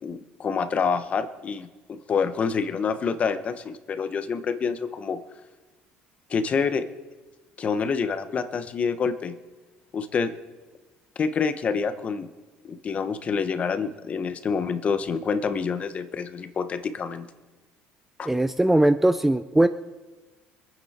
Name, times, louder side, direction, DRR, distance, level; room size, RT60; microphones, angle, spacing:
voice 1, 0.0-5.2 6.3-6.9 7.6-9.3 9.9-10.3 11.2-12.3 12.6-17.3 18.2-18.3, left 5 dB, 35° left, 10 dB, 1.1 m, -27 dB
voice 2, 18.3-19.7, right 1 dB, 5° right, 12 dB, 0.5 m, -20 dB
24.5 x 9.3 x 4.4 m, 1.3 s
cardioid pair, 120°, 4 cm